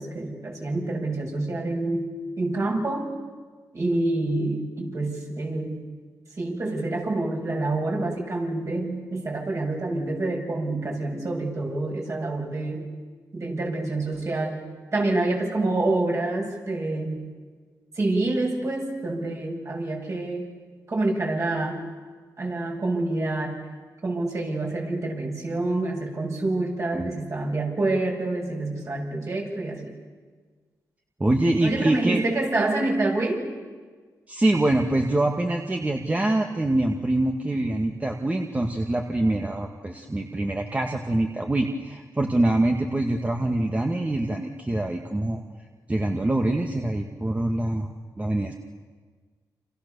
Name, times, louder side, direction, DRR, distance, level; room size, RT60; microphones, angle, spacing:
voice 1, 0.0-2.1 2.4-3.1 3.7-5.8 6.4-12.9 13.3-14.6 14.9-17.2 18.0-20.4 20.9-21.8 22.4-23.6 24.0-29.9 31.6-33.4, right 2 dB, 45° right, 0 dB, 7.7 m, -27 dB
voice 2, 31.2-32.2 34.3-45.4 45.9-48.5, right 1 dB, 20° right, 2 dB, 1.9 m, -24 dB
30.0 x 27.0 x 7.0 m, 1.5 s
cardioid pair, 85°, 7 cm